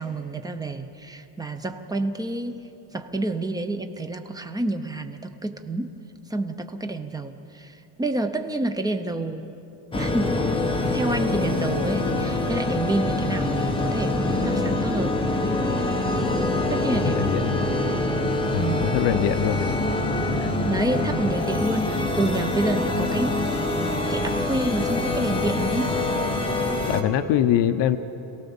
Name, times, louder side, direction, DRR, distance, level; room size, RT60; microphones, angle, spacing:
voice 1, 0.0-2.6 2.9-6.0 6.3-9.5 9.9-10.4 10.9-15.2 16.7-17.3 17.6-17.7 18.6-18.8 20.6-23.5 24.1-26.0, right 2 dB, 10° right, 7 dB, 0.6 m, -28 dB
sound 1, 9.9-27.0, left 2 dB, 10° left, 1.2 m, -25 dB
voice 2, 17.0-17.6 18.5-19.8 20.3-20.5 26.9-28.0, left 11 dB, 55° left, 11 dB, 0.8 m, -23 dB
27.0 x 17.5 x 7.1 m, 3.0 s
cardioid pair, 165°, 50 cm